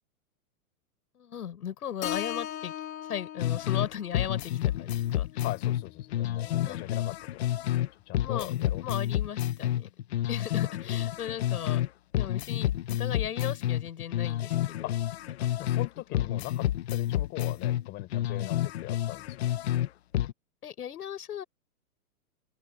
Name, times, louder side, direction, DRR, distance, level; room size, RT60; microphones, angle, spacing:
voice 1, 1.1-2.7 3.1-5.4 6.7-6.8 8.2-8.5 8.8-9.9 10.3-11.8 12.1-12.7 13.0-14.9 15.4-15.8 16.1-16.2 18.4-18.5 20.6-21.4, left 9 dB, 80° left, 7.5 m, -37 dB
Keyboard (musical), 2.0-6.2, left 11 dB, 60° left, 3.4 m, -40 dB
sound 1, 3.4-3.9 4.1-7.9 8.1-11.9 12.1-15.9 16.1-19.9 20.1-20.3, left 12 dB, 45° left, 0.8 m, -29 dB
voice 2, 5.4-7.5 8.1-8.8 10.6-10.7 14.8-15.0 15.6-19.6, left 19 dB, 25° left, 4.6 m, -40 dB
open air
hypercardioid pair, 170°, 45 cm